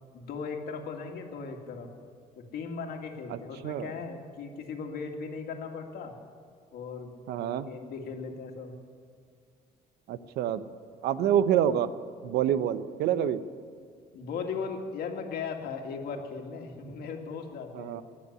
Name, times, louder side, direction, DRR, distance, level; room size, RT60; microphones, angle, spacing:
voice 1, 0.1-1.9 2.4-6.2 6.7-7.1 7.4-8.7 14.1-18.0, left 5 dB, 65° left, 3 dB, 2.1 m, -38 dB
voice 2, 7.3-7.7 10.1-10.6 11.0-11.9 12.2-13.4 17.7-18.0, right 10 dB, 75° right, 13 dB, 0.8 m, -27 dB
19.5 x 7.1 x 9.8 m, 2.2 s
cardioid pair, 110°, 17 cm